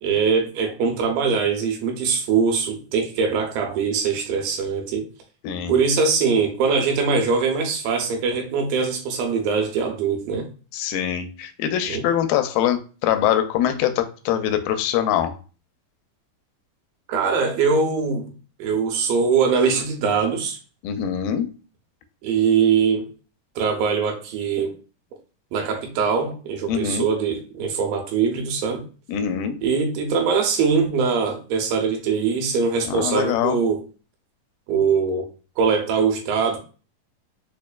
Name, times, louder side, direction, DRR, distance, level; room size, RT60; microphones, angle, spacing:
voice 1, 0.0-5.1 5.7-10.5 11.9-12.0 17.1-18.3 18.6-20.6 22.2-23.1 23.6-24.7 25.5-28.8 29.6-33.8 34.7-35.3 35.6-36.6, right 5 dB, 80° right, 2.4 m, -22 dB
voice 2, 5.4-5.8 10.7-15.4 20.8-21.5 26.7-27.1 29.1-29.6 32.8-33.6, left 10 dB, 85° left, 2.2 m, -23 dB
5.7 x 2.3 x 2.2 m
omnidirectional pair, 4.0 m